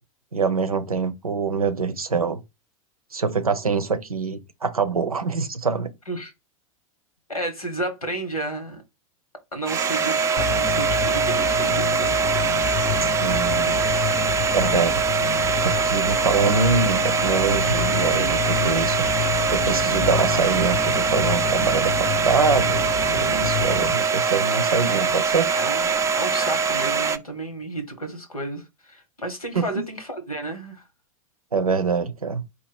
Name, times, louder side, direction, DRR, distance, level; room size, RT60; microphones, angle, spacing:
voice 1, 0.3-2.4 3.1-5.9 13.0-13.8 14.5-15.0 15.6-25.5 29.5-29.9 31.5-32.4, right 5 dB, 90° right, 0.6 m, -24 dB
voice 2, 7.3-8.8 9.5-12.2 25.5-30.8, right 2 dB, 90° left, 1.2 m, -32 dB
Domestic sounds home sounds, 9.7-27.2, right 5 dB, 15° right, 0.4 m, -23 dB
sound 1, 10.4-23.9, left 9 dB, 40° left, 0.6 m, -30 dB
4.4 x 2.4 x 4.7 m
figure-of-eight pair, 90°, 18 cm